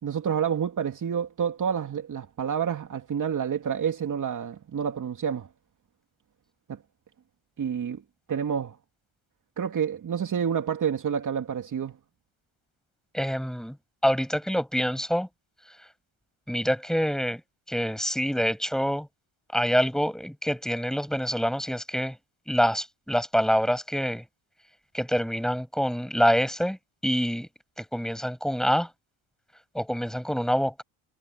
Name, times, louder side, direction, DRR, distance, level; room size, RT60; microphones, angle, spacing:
voice 1, 0.0-5.5 6.7-6.8 7.6-8.0 8.3-8.8 9.6-11.9, right 7 dB, 40° right, 2.9 m, -28 dB
voice 2, 13.1-13.7 14.0-15.3 16.5-17.4 17.7-19.1 19.5-22.1 22.5-24.2 24.9-26.8 27.0-27.5 27.8-28.9 29.7-30.8, equal, ahead, 7.8 m, -26 dB
supercardioid pair, 90°, 46 cm